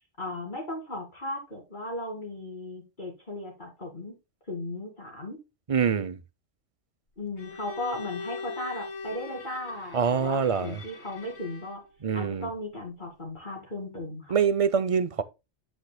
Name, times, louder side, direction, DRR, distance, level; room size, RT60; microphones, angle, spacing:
voice 1, 0.2-4.1 4.5-5.4 7.2-11.8 12.1-14.4, left 1 dB, 40° left, 2.5 m, -36 dB
voice 2, 5.7-6.2 9.9-10.8 12.0-12.5 14.3-15.2, right 6 dB, 35° right, 0.6 m, -25 dB
Bowed string instrument, 7.4-11.9, left 4 dB, 65° left, 2.6 m, -41 dB
8.9 x 8.2 x 2.2 m
omnidirectional pair, 1.2 m